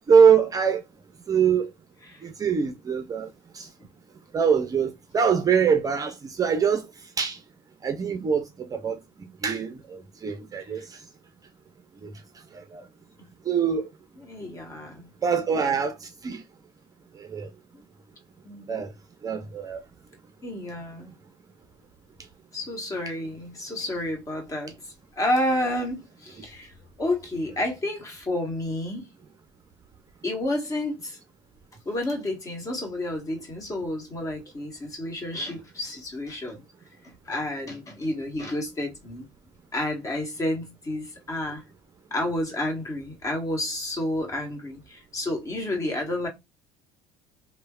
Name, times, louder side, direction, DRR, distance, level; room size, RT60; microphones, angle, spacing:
voice 1, 0.1-0.8 1.3-1.7 2.2-3.3 3.5-3.7 4.3-6.8 7.2-7.4 7.8-8.9 9.4-11.0 12.0-12.1 12.5-12.8 13.5-13.9 15.2-16.4 17.2-17.5 18.7-18.9 19.2-19.8, right 6 dB, 30° right, 0.5 m, -23 dB
voice 2, 14.2-15.1 18.4-18.8 20.4-21.2 22.5-26.7 27.0-29.1 30.2-31.2 31.8-36.6 37.2-39.3 39.7-41.6 42.1-46.3, left 1 dB, 25° left, 1.3 m, -30 dB
3.1 x 2.1 x 2.2 m
supercardioid pair, 90°, 12 cm